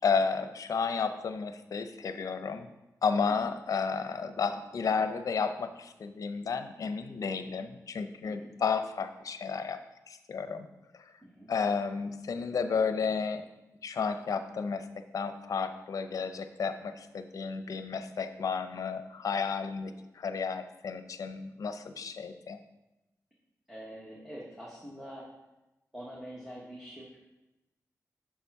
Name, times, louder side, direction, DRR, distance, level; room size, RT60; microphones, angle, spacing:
voice 1, 0.0-2.7 3.0-9.8 10.1-10.7 10.9-11.1 11.5-13.5 13.8-14.9 15.1-22.6, left 5 dB, 65° left, 9 dB, 0.6 m, -32 dB
voice 2, 8.2-8.5 11.2-11.5 23.7-25.3 25.9-27.2, equal, 5° right, -5 dB, 1.3 m, -45 dB
7.1 x 5.8 x 4.7 m, 0.99 s
wide cardioid pair, 155°, 6 cm